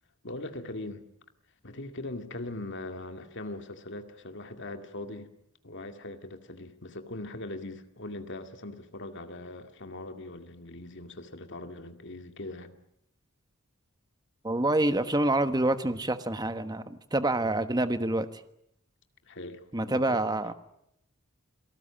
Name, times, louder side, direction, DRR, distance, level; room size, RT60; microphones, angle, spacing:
voice 1, 0.2-1.1 1.6-5.3 5.6-12.7 19.2-20.2, left 2 dB, 55° left, 2.2 m, -40 dB
voice 2, 14.4-18.3 19.7-20.5, right 2 dB, 20° right, 1.3 m, -27 dB
28.5 x 18.5 x 8.8 m
head